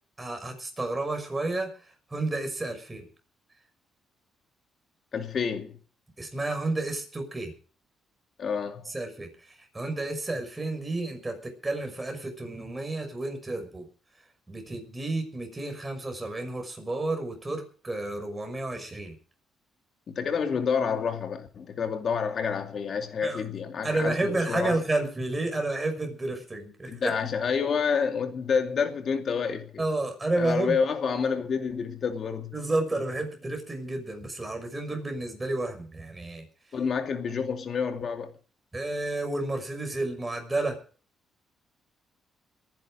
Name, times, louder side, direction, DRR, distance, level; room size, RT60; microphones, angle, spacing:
voice 1, 0.2-1.7 2.1-3.1 6.2-7.5 8.9-9.3 9.7-13.9 14.5-19.1 23.2-23.4 23.8-27.1 29.8-30.8 32.5-36.4 38.7-40.8, right 2 dB, 20° right, 5.9 m, -31 dB
voice 2, 5.1-5.8 8.4-8.9 20.1-24.8 26.9-29.8 30.4-32.5 36.7-38.3, left 6 dB, 55° left, 2.5 m, -28 dB
21.5 x 10.5 x 5.0 m
cardioid pair, 90°, 0 cm